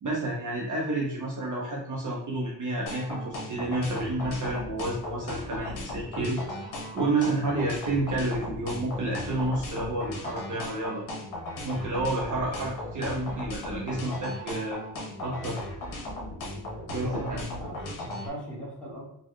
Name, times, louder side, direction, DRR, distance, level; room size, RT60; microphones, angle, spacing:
voice 1, 0.0-6.6 6.9-11.0 11.6-14.8 15.2-15.6 16.9-17.4, right 2 dB, 45° right, -3 dB, 0.5 m, -30 dB
sound 1, 2.9-18.3, left 1 dB, 75° left, 1.0 m, -37 dB
voice 2, 16.9-19.0, right 1 dB, ahead, -7 dB, 0.9 m, -39 dB
3.8 x 2.1 x 3.1 m, 0.77 s
wide cardioid pair, 175°, 46 cm